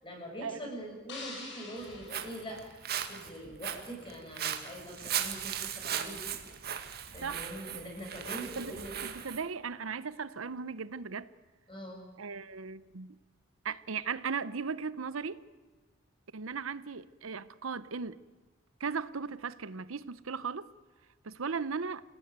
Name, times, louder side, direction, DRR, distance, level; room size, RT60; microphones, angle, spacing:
voice 1, 0.0-2.6 3.1-6.4 7.1-8.9 11.7-12.0, right 1 dB, 25° left, 7.2 m, -43 dB
sound 1, 1.1-3.4, left 3 dB, 60° left, 5.5 m, -47 dB
Walk footsteps, 1.8-9.4, right 9 dB, 50° right, 1.9 m, -38 dB
voice 2, 9.0-11.3 12.2-13.2 13.6-15.4 16.3-18.2 18.8-20.7 21.2-22.0, right 5 dB, 85° right, 0.8 m, -37 dB
27.5 x 17.5 x 9.5 m
head